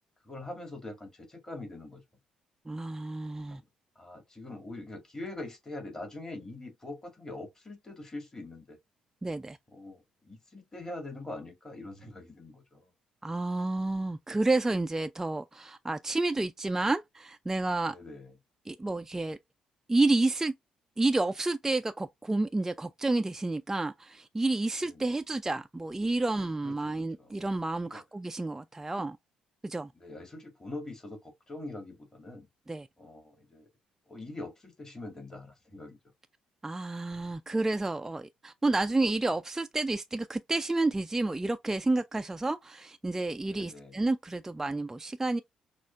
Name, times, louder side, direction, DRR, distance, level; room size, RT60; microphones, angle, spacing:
voice 1, 0.2-2.0 3.5-3.6 4.0-8.8 9.7-12.9 17.9-18.3 24.8-25.1 26.6-27.4 27.9-28.0 29.9-32.5 33.0-33.7 34.1-36.0 43.5-44.0, left 2 dB, 25° left, 2.3 m, -43 dB
voice 2, 2.7-3.6 9.2-9.6 13.2-18.0 18.7-19.4 19.9-20.5 21.0-29.2 29.6-29.9 32.7-32.9 36.6-45.4, right 2 dB, 15° right, 0.4 m, -30 dB
6.1 x 2.4 x 2.5 m
figure-of-eight pair, 45°, 3 cm